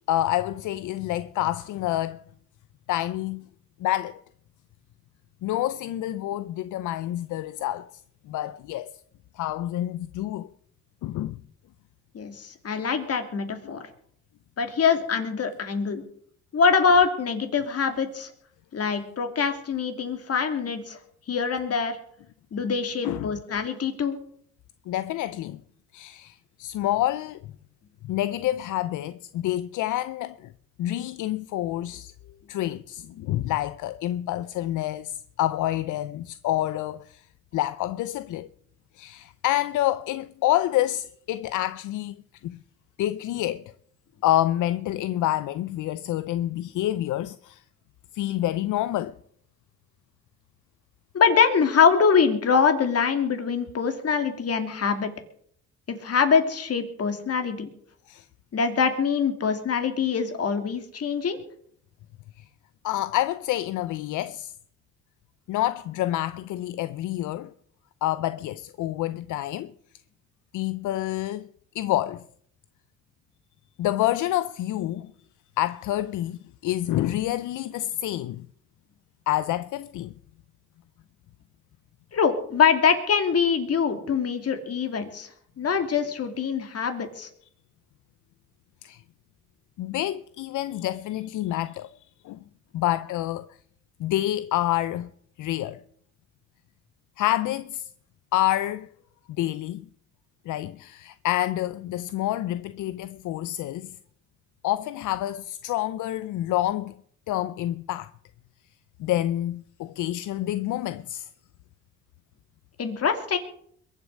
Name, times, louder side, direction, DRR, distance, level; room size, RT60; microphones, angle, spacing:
voice 1, 0.1-2.2 2.9-3.5 3.8-4.2 5.4-8.0 8.3-9.0 9.4-10.5 11.0-11.4 13.6-13.8 23.0-23.3 24.9-25.6 25.9-27.4 28.0-30.5 30.8-32.1 32.5-37.2 37.5-38.5 38.9-42.2 42.4-42.6 43.0-43.6 44.2-47.6 48.1-49.2 58.1-58.3 62.4-62.5 62.8-64.5 65.5-67.5 68.0-69.7 70.5-71.5 71.7-72.2 73.8-75.1 75.6-78.5 79.3-80.1 88.8-89.0 89.8-91.9 92.2-92.4 92.7-93.6 94.0-95.1 95.4-95.8 97.2-97.9 98.3-98.9 99.4-99.8 100.5-104.0 104.6-106.9 107.3-108.1 109.0-111.3, left 14 dB, 80° left, 0.6 m, -28 dB
voice 2, 12.1-13.8 14.6-16.0 16.5-18.3 18.7-21.0 21.3-22.0 22.5-24.2 51.1-55.1 55.9-57.7 58.5-61.4 82.1-85.3 85.6-87.3 112.8-113.4, left 6 dB, 50° left, 2.7 m, -24 dB
22.0 x 8.3 x 6.4 m
cardioid pair, 90°, 30 cm